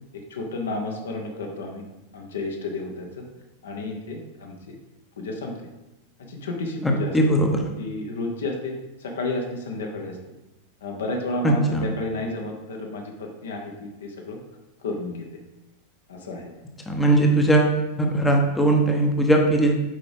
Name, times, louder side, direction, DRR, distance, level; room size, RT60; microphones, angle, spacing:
voice 1, 0.3-1.8 2.1-3.2 3.6-4.5 5.2-5.5 6.3-7.1 7.8-8.7 9.0-10.2 10.8-14.4 14.8-15.3 16.1-16.5, left 2 dB, 65° left, 2 dB, 1.1 m, -31 dB
voice 2, 6.8-7.6 11.4-11.9 16.9-19.7, right 1 dB, 10° left, 1 dB, 0.9 m, -20 dB
7.5 x 4.9 x 3.5 m, 1.0 s
figure-of-eight pair, 90°, 0 cm